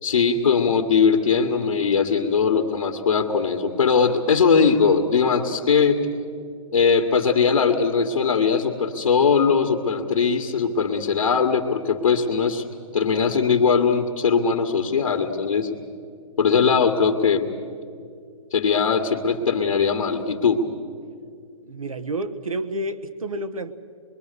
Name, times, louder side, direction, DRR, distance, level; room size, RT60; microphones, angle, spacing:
voice 1, 0.0-6.1 6.7-12.6 12.9-15.7 16.4-17.5 18.5-20.6, left 5 dB, 70° left, 1 dB, 1.9 m, -20 dB
voice 2, 21.6-23.7, right 1 dB, 85° right, 8 dB, 1.4 m, -29 dB
26.0 x 22.5 x 6.9 m, 2.2 s
hypercardioid pair, 130°, 17 cm